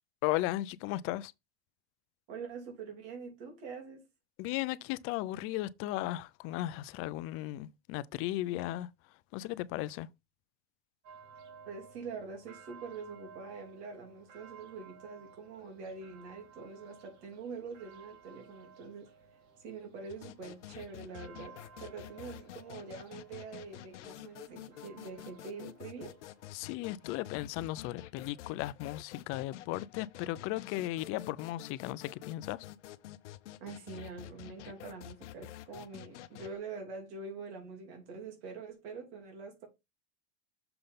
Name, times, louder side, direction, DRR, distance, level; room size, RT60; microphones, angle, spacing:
voice 1, 0.2-1.3 4.4-8.9 9.3-10.1 26.5-32.7, left 16 dB, 40° left, 0.5 m, -36 dB
voice 2, 2.3-4.1 11.7-19.1 19.6-26.2 33.6-39.7, right 4 dB, 70° right, 3.0 m, -45 dB
sound 1, 11.0-27.1, right 6 dB, 50° right, 2.3 m, -57 dB
sound 2, 20.1-36.5, left 13 dB, 85° left, 0.7 m, -49 dB
6.9 x 3.8 x 5.2 m
supercardioid pair, 125°, 35 cm